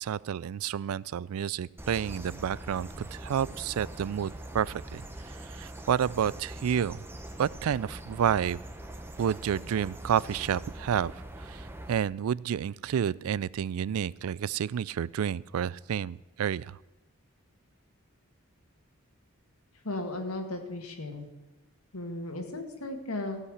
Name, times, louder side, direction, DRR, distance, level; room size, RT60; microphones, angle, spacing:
voice 1, 0.0-7.0 7.4-8.6 9.2-16.8, right 8 dB, 80° right, 22 dB, 0.3 m, -30 dB
sound 1, 1.8-12.0, right 1 dB, 10° right, 0.9 m, -43 dB
voice 2, 19.8-21.3 21.9-23.4, left 2 dB, 80° left, 5 dB, 2.0 m, -35 dB
15.5 x 5.7 x 8.0 m, 1.2 s
head